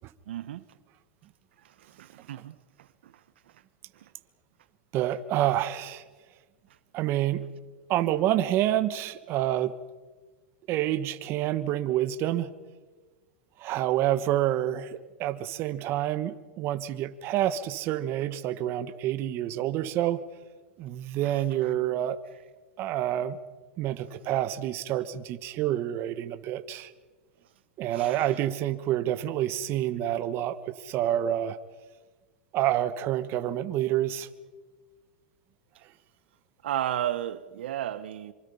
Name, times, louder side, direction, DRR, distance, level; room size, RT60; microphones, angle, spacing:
voice 1, 0.3-0.6 2.0-2.5 27.9-28.3 36.6-38.3, right 11 dB, 75° right, 1.1 m, -32 dB
voice 2, 4.9-6.0 6.9-7.4 7.9-9.7 10.7-12.5 13.6-20.2 20.8-22.2 22.8-23.4 23.8-26.9 27.8-31.6 32.5-34.3, right 12 dB, 40° right, 1.4 m, -28 dB
26.0 x 24.5 x 5.6 m
hypercardioid pair, 125°, 6 cm